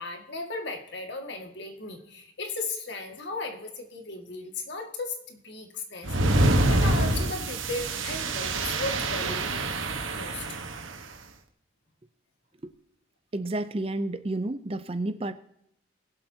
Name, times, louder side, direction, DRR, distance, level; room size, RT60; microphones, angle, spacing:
voice 1, 0.0-9.6 10.1-10.6, left 3 dB, 60° left, 3 dB, 1.9 m, -36 dB
sound 1, 6.0-10.9, right 1 dB, 80° right, 1.3 m, -26 dB
voice 2, 13.3-15.3, right 2 dB, 30° right, 10 dB, 0.5 m, -30 dB
21.5 x 7.8 x 2.8 m, 0.75 s
head